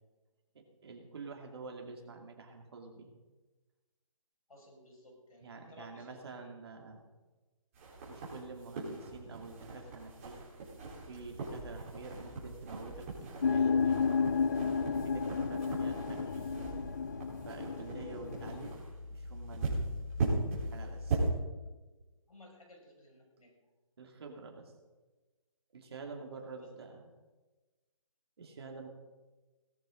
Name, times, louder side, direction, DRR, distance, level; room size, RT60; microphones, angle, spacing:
voice 1, 0.5-3.1 5.4-7.0 8.0-10.4 11.0-14.2 15.0-16.5 17.4-18.8 19.1-19.9 20.7-21.3 24.0-24.7 25.7-27.1 28.4-28.9, right 3 dB, 45° right, 2 dB, 2.6 m, -48 dB
voice 2, 4.5-6.2 22.3-23.6 26.5-26.7, left 1 dB, 90° left, 0 dB, 6.0 m, -57 dB
sound 1, 7.7-21.3, right 2 dB, 25° right, 4.1 m, -39 dB
sound 2, 13.4-18.8, left 5 dB, 35° left, 0.5 m, -32 dB
18.5 x 13.0 x 3.9 m, 1.2 s
hypercardioid pair, 165°, 18 cm